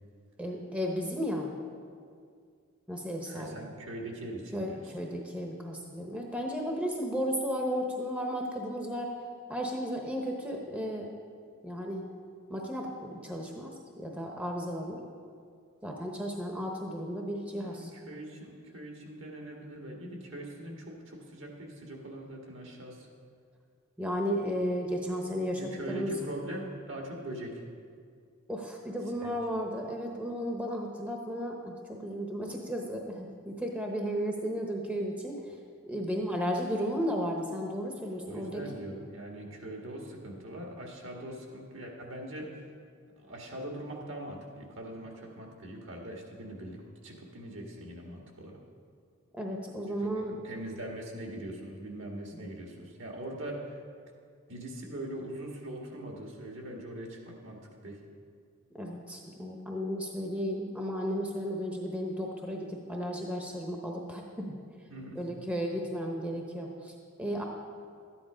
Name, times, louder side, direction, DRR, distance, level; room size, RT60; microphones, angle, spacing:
voice 1, 0.4-1.5 2.9-3.6 4.5-9.1 9.5-11.1 11.6-12.1 12.5-13.7 14.0-15.0 15.8-17.9 24.0-26.1 28.5-35.6 35.8-38.6 49.3-50.4 52.3-52.6 58.7-64.5 65.2-67.4, equal, 5° right, 0 dB, 0.9 m, -34 dB
voice 2, 3.2-4.9 17.5-23.1 25.6-27.6 29.2-29.3 38.2-42.6 43.2-48.6 50.2-53.8 54.5-57.6 57.8-58.0 64.9-65.2, right 1 dB, 65° right, 0 dB, 1.9 m, -42 dB
13.0 x 9.9 x 5.0 m, 2.2 s
head